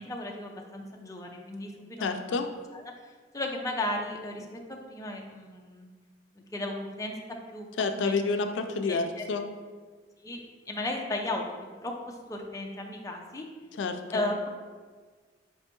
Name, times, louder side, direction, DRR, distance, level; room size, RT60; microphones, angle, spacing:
voice 1, 0.0-2.4 2.7-5.9 6.3-7.2 7.5-8.2 8.9-9.3 10.2-10.4 10.7-11.5 11.8-13.5 14.1-14.5, left 1 dB, 20° left, 1 dB, 0.4 m, -35 dB
voice 2, 2.0-2.5 7.8-9.4 13.7-14.3, left 4 dB, 85° left, 7 dB, 0.3 m, -29 dB
4.9 x 3.3 x 2.9 m, 1.5 s
head